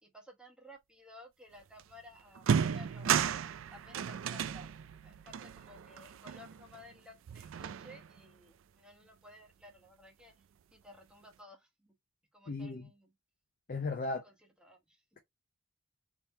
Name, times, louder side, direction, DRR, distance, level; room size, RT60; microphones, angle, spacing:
voice 1, 0.0-3.3 3.7-4.7 5.0-10.4 10.7-11.9 12.3-13.1 14.0-15.0, left 1 dB, 5° right, 1.1 m, -56 dB
sound 1, 1.8-1.9 2.3-6.9 7.3-8.2, right 7 dB, 70° right, 0.3 m, -34 dB
voice 2, 12.5-12.9 13.7-14.2, left 3 dB, 45° left, 0.6 m, -36 dB
3.6 x 2.8 x 4.2 m
head